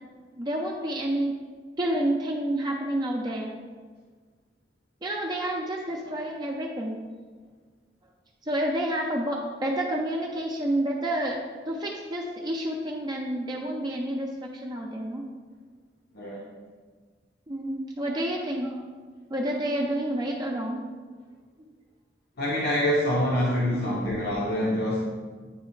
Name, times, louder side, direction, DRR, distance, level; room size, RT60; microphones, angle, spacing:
voice 1, 0.0-1.4 1.8-3.5 5.0-7.0 8.5-11.4 11.7-15.3 17.5-18.9 19.3-20.8 23.7-24.0, right 1 dB, 25° right, -1 dB, 0.5 m, -29 dB
voice 2, 22.4-25.0, left 1 dB, 60° left, -5 dB, 0.9 m, -25 dB
9.4 x 3.3 x 3.1 m, 1.5 s
head